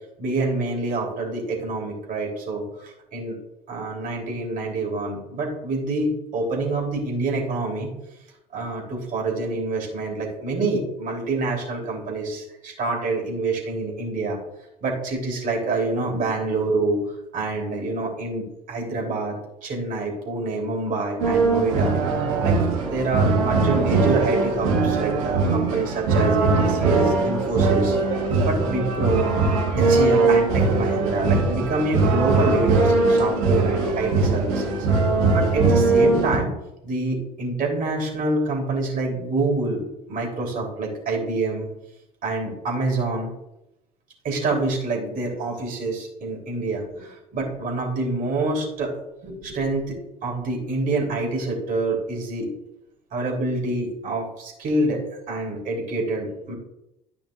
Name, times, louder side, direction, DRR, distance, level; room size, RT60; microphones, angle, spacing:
voice 1, 0.2-3.4 3.7-7.9 8.5-14.4 14.8-17.0 17.3-19.3 19.6-22.0 22.4-28.0 28.4-29.2 29.8-34.9 35.3-36.5 36.8-41.7 42.2-43.3 44.2-48.9 49.2-50.0 50.2-52.5 53.1-55.0 55.3-56.5, right 3 dB, 45° right, -1 dB, 3.4 m, -26 dB
sound 1, 21.2-36.4, right 3 dB, 65° right, 1.8 m, -21 dB
13.5 x 5.9 x 2.5 m, 0.87 s
figure-of-eight pair, 60°, 20 cm